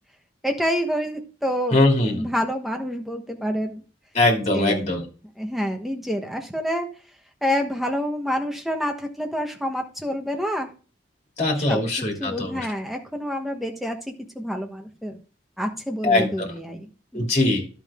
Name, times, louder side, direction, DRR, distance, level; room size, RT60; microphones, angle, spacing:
voice 1, 0.4-1.8 2.0-3.8 4.5-4.9 5.4-6.9 7.4-10.7 11.7-11.8 12.2-14.0 14.3-15.2 15.6-17.4, equal, ahead, 3 dB, 1.1 m, -27 dB
voice 2, 1.7-2.3 4.1-5.0 11.4-12.7 16.0-16.5 17.1-17.6, left 2 dB, 35° left, 0 dB, 2.8 m, -21 dB
11.5 x 5.6 x 3.6 m, 0.37 s
head